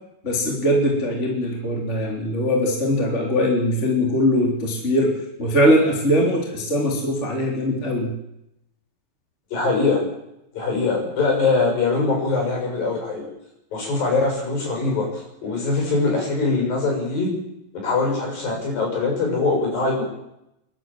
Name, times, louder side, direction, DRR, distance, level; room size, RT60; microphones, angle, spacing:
voice 1, 0.2-5.1 5.4-8.1, equal, 15° left, -1 dB, 3.2 m, -21 dB
voice 2, 9.5-10.0 10.5-13.2 13.7-17.3 17.7-20.0, left 3 dB, 50° left, 0 dB, 8.5 m, -22 dB
29.0 x 12.0 x 7.7 m, 0.84 s
omnidirectional pair, 5.2 m